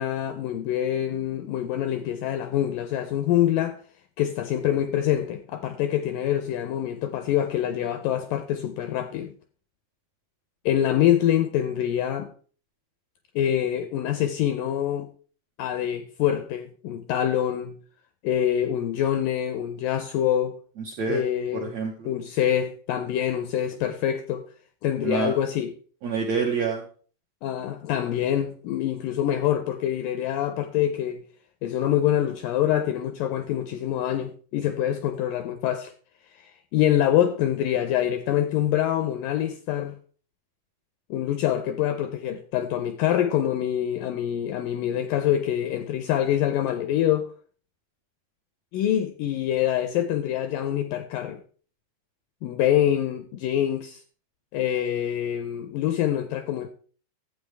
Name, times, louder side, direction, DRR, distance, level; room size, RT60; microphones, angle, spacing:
voice 1, 0.0-3.8 4.2-9.3 10.7-12.3 13.4-15.1 15.6-17.8 18.2-20.6 21.1-21.8 22.1-24.4 24.8-25.7 27.4-31.2 31.6-35.9 36.4-40.0 41.1-47.3 48.7-51.4 52.4-54.0 54.5-56.7, left 11 dB, 85° left, 1.9 m, -25 dB
voice 2, 20.8-21.2 21.5-22.1 25.0-25.3 26.0-26.8, right 5 dB, 70° right, 1.7 m, -27 dB
11.5 x 8.2 x 3.3 m
omnidirectional pair, 4.5 m